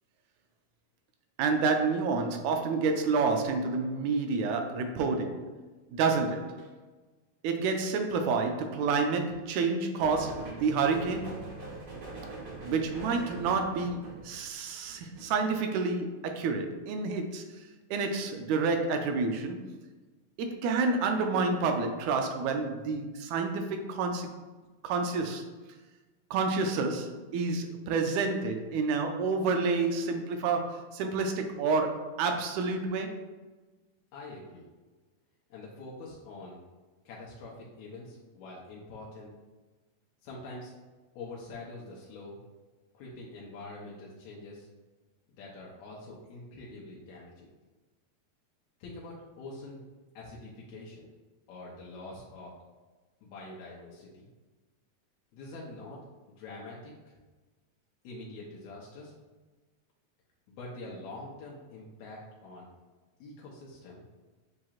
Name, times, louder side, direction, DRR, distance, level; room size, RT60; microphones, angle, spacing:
voice 1, 1.4-5.5 5.9-6.7 7.4-11.5 12.6-17.4 17.9-19.6 20.4-24.3 24.8-25.5 26.3-33.2, right 4 dB, 85° right, 5 dB, 1.9 m, -29 dB
sound 1, 10.0-15.4, right 2 dB, 50° right, 1.5 m, -43 dB
voice 2, 34.1-34.6 35.5-36.6 37.1-39.3 40.2-40.7 41.2-42.4 42.9-44.7 45.3-47.5 48.8-49.8 50.2-51.1 51.5-52.5 53.2-54.3 55.3-56.0 56.4-57.2 58.0-59.1 60.5-62.7 63.2-64.0, left 2 dB, 80° left, -4 dB, 2.1 m, -45 dB
7.6 x 2.9 x 2.4 m, 1.2 s
omnidirectional pair, 3.3 m